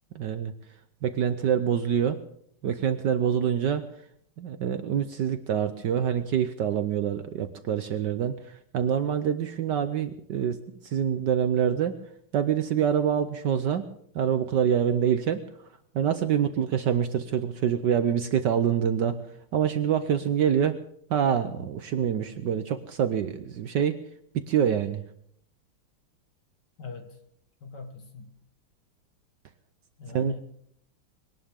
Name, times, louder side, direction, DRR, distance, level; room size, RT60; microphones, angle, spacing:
voice 1, 0.1-0.5 1.0-2.2 2.6-3.8 4.4-8.4 8.7-12.0 12.3-13.9 14.1-15.4 15.9-19.2 19.5-20.8 21.1-24.0 24.3-25.0 30.1-30.3, right 8 dB, 65° right, 10 dB, 1.2 m, -26 dB
voice 2, 26.8-27.2 27.6-28.3 30.0-30.4, left 4 dB, 50° left, 5 dB, 2.4 m, -40 dB
21.5 x 18.0 x 3.7 m, 0.68 s
omnidirectional pair, 2.4 m